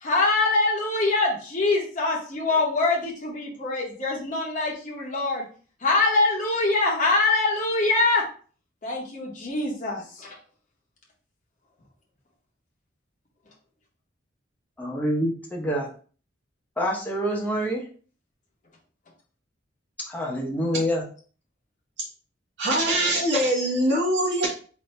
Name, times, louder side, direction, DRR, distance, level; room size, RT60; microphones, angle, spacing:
voice 1, 0.0-5.5 5.8-8.2 8.8-10.3, left 3 dB, 40° left, -2 dB, 0.9 m, -24 dB
voice 2, 14.8-15.9 16.8-17.8 20.1-21.0, equal, 10° left, -2 dB, 0.8 m, -26 dB
voice 3, 22.6-24.5, right 1 dB, 65° right, -5 dB, 1.8 m, -23 dB
4.2 x 2.7 x 3.2 m, 0.41 s
head